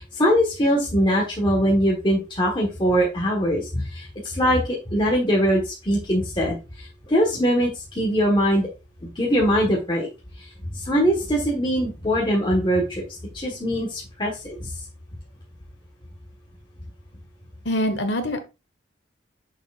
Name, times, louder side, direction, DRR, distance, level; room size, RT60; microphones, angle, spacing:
voice 1, 0.0-8.7 9.1-10.1 10.4-10.5 10.7-13.0 13.3-14.7, equal, 25° left, -3 dB, 1.3 m, -22 dB
voice 2, 17.6-18.4, left 1 dB, 65° left, 8 dB, 1.3 m, -24 dB
6.8 x 6.4 x 2.4 m, 0.28 s
head